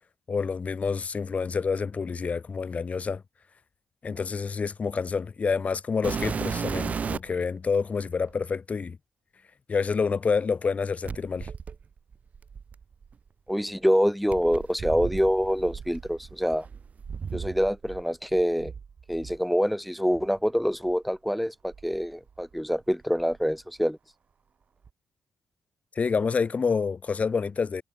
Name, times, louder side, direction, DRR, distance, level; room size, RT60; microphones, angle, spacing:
voice 1, 0.3-3.2 4.0-9.0 9.7-11.5 26.0-27.8, left 5 dB, 45° left, 1.9 m, -28 dB
sound 1, 6.0-7.4 8.3-8.4 11.0-13.1 14.3-18.0 18.3-19.4 20.1-20.3 20.9-21.0 21.7-22.8 23.0-23.5 24.8-24.9, right 6 dB, 45° right, 0.5 m, -35 dB
voice 2, 13.5-16.7 17.3-18.7 19.1-24.0, equal, ahead, 0.6 m, -26 dB
hypercardioid pair, 45°, 3 cm